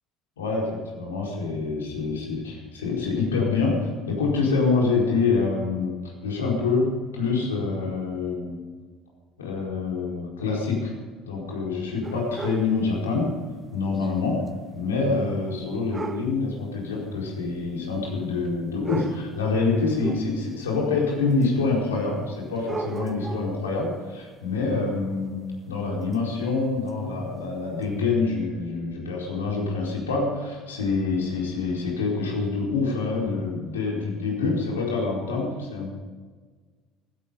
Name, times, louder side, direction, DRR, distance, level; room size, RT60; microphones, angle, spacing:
voice 1, 0.4-8.6 9.4-10.9 11.2-13.3 13.7-14.4 14.7-25.4 25.7-35.9, left 4 dB, 80° left, -2 dB, 4.6 m, -26 dB
sound 1, 12.0-12.8 13.9-14.1 14.5-14.6 15.9-16.4 17.4-17.5 18.4-18.5 18.8-19.4 20.0-20.7 21.4-21.5 22.6-23.6 26.1-26.2 26.9-27.0 27.8-27.9, right 4 dB, 25° right, 0.7 m, -35 dB
16.0 x 16.0 x 5.5 m, 1.5 s
figure-of-eight pair, 60°, 0 cm